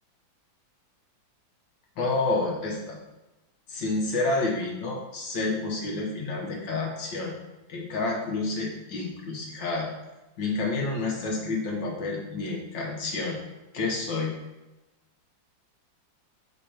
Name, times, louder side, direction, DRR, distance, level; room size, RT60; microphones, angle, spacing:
voice 1, 2.0-3.0 3.7-7.4 7.7-9.9 10.4-13.4 13.7-14.3, left 3 dB, 75° left, -1 dB, 2.0 m, -29 dB
5.0 x 4.4 x 5.1 m, 1.0 s
omnidirectional pair, 2.1 m